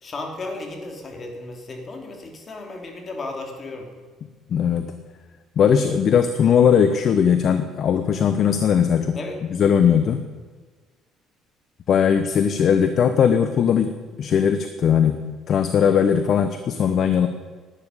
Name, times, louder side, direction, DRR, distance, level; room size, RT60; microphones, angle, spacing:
voice 1, 0.0-3.9 9.1-9.4, left 2 dB, 35° left, 2 dB, 3.2 m, -34 dB
voice 2, 4.5-4.9 5.6-9.2 9.5-10.2 11.9-15.2 15.5-17.3, left 7 dB, 50° left, 9 dB, 0.9 m, -19 dB
12.0 x 9.5 x 9.9 m, 1.4 s
cardioid pair, 120°, 0 cm